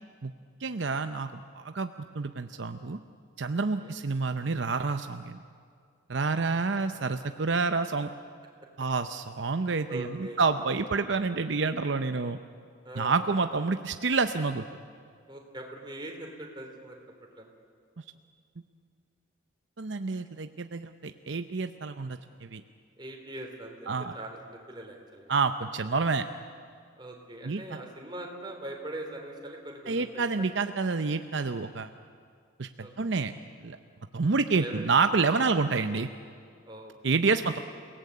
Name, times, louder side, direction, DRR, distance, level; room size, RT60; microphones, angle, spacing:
voice 1, 0.6-3.0 3.4-5.4 6.1-8.1 8.8-12.4 13.0-14.6 19.8-22.6 23.9-24.1 25.3-26.3 27.4-27.8 29.9-31.9 32.6-32.7 33.0-33.3 33.6-33.8 34.1-36.1 37.0-37.6, right 4 dB, 65° right, 9 dB, 0.7 m, -28 dB
voice 2, 3.5-3.9 6.5-7.2 9.9-10.4 12.8-13.2 15.3-17.0 17.4-17.5 23.0-25.3 27.0-30.5 32.8-32.9 34.6-35.0 36.7-36.9 37.4-37.6, right 1 dB, 25° right, 1 dB, 3.6 m, -42 dB
29.5 x 18.5 x 8.5 m, 2.2 s
head